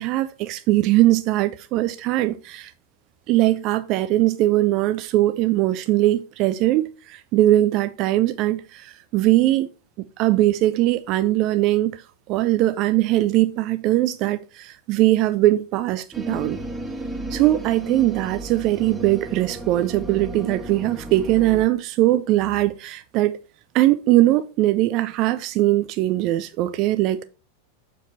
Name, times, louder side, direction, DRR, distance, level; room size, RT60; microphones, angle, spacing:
voice 1, 0.0-2.7 3.3-9.7 10.0-12.0 12.3-16.6 17.3-23.4 23.7-27.2, right 15 dB, 40° right, 0.5 m, -20 dB
sound 1, 16.1-21.7, right 1 dB, 10° right, 1.0 m, -34 dB
6.8 x 5.0 x 4.1 m
figure-of-eight pair, 90°, 0 cm